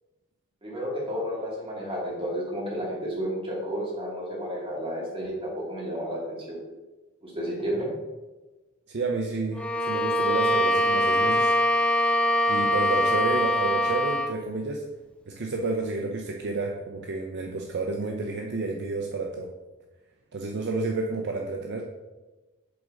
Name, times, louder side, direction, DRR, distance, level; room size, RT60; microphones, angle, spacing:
voice 1, 0.6-6.4 7.2-7.9, equal, 25° right, -4 dB, 2.3 m, -31 dB
voice 2, 8.9-11.5 12.5-14.8 15.3-19.5 20.3-21.8, right 3 dB, 55° right, 2 dB, 0.6 m, -30 dB
Bowed string instrument, 9.5-14.4, left 1 dB, 5° left, 0.4 m, -23 dB
7.8 x 3.8 x 5.1 m, 1.2 s
head